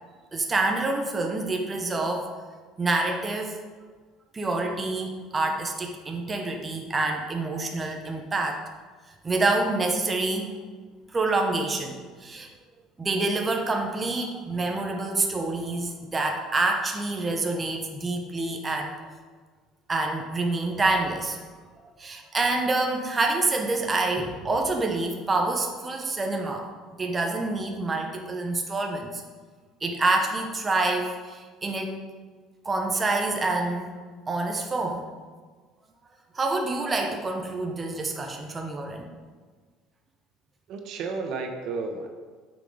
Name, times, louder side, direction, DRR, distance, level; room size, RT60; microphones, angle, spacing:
voice 1, 0.3-2.3 2.8-3.6 4.3-8.6 9.2-10.6 11.1-12.5 13.0-19.0 19.9-21.4 21.8-26.7 27.0-29.2 29.8-31.9 32.6-35.1 36.3-39.1, right 2 dB, 20° right, 2 dB, 1.0 m, -27 dB
voice 2, 40.7-42.1, right 4 dB, 60° right, 4 dB, 1.2 m, -32 dB
9.1 x 6.2 x 5.1 m, 1.5 s
cardioid pair, 120°, 0 cm